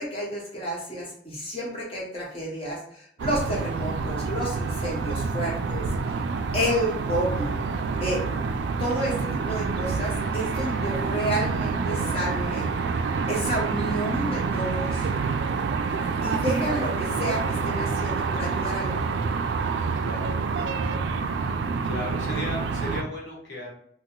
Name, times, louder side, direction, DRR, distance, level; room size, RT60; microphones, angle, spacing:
voice 1, 0.0-6.2 6.5-7.5 8.0-8.2 8.8-12.7 13.3-15.1 16.2-19.1, equal, 35° left, -4 dB, 1.1 m, -30 dB
sound 1, 3.2-23.0, right 4 dB, 85° right, 0.3 m, -27 dB
voice 2, 19.9-20.4 21.8-23.7, left 1 dB, 85° left, -3 dB, 1.1 m, -35 dB
2.8 x 2.1 x 3.6 m, 0.65 s
head